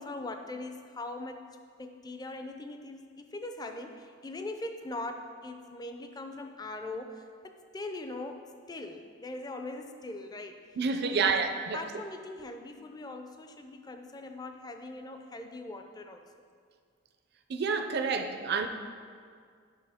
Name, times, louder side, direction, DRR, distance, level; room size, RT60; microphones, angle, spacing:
voice 1, 0.0-10.8 11.0-16.2, left 2 dB, 20° left, 6 dB, 0.4 m, -41 dB
voice 2, 10.8-11.8 17.5-18.7, right 5 dB, 50° right, 6 dB, 0.4 m, -28 dB
10.0 x 5.6 x 3.5 m, 2.1 s
head